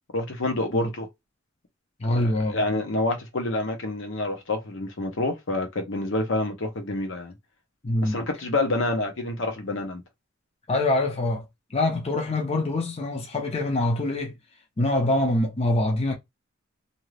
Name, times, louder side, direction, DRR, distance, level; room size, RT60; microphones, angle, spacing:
voice 1, 0.1-1.1 2.0-7.3 8.0-10.0, left 2 dB, 65° left, 0.9 m, -28 dB
voice 2, 2.0-2.6 7.8-8.2 10.7-11.4 11.7-14.3 14.8-16.1, left 2 dB, 30° left, 0.6 m, -24 dB
2.7 x 2.4 x 3.2 m
head